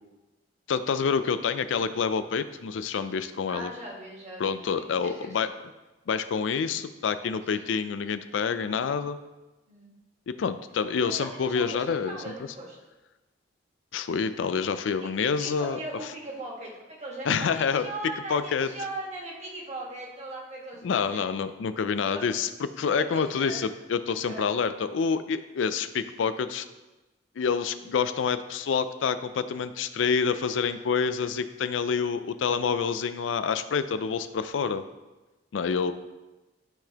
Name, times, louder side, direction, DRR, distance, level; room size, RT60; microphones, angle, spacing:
voice 1, 0.7-3.7 4.4-5.5 6.1-9.2 10.3-12.2 13.9-15.8 17.3-17.9 18.3-18.7 20.8-26.6 27.4-34.8 35.5-35.9, left 6 dB, 90° left, 12 dB, 0.4 m, -27 dB
voice 2, 3.5-5.5 7.5-7.7 9.7-9.9 11.0-12.8 15.0-21.2 22.1-22.2 22.8-23.7 24.2-24.5, right 2 dB, 40° right, -3 dB, 1.6 m, -39 dB
11.5 x 3.9 x 2.9 m, 1.1 s
head